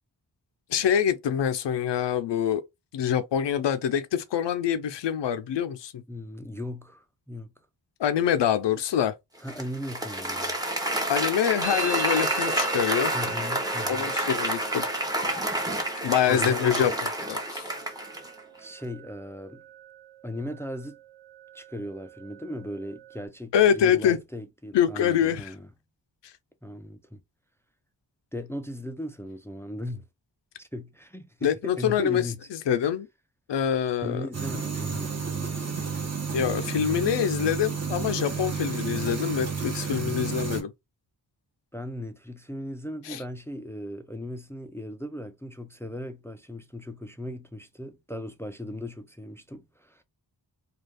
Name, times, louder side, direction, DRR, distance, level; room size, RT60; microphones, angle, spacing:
voice 1, 0.7-2.6 2.9-6.0 8.0-9.1 11.1-13.1 13.9-14.8 16.0-17.6 23.5-24.2 24.7-25.5 31.4-32.2 32.5-33.1 33.5-34.3 36.3-40.7 43.1-43.2, left 9 dB, 80° left, 0.6 m, -25 dB
voice 2, 6.1-7.5 9.4-10.6 13.1-14.1 16.3-17.0 18.6-19.6 20.2-21.0 21.5-25.7 26.6-27.2 28.3-30.1 30.6-32.5 34.0-35.1 40.1-40.4 41.7-50.0, left 1 dB, 5° left, 0.3 m, -37 dB
Applause, 9.5-18.4, right 1 dB, 10° right, 0.7 m, -29 dB
Musical instrument, 11.6-19.3 19.5-20.1 20.4-21.0 21.2-23.2, right 7 dB, 60° right, 0.7 m, -40 dB
sound 1, 34.3-40.6, right 5 dB, 35° right, 0.9 m, -31 dB
2.4 x 2.3 x 3.3 m
wide cardioid pair, 80°, 42 cm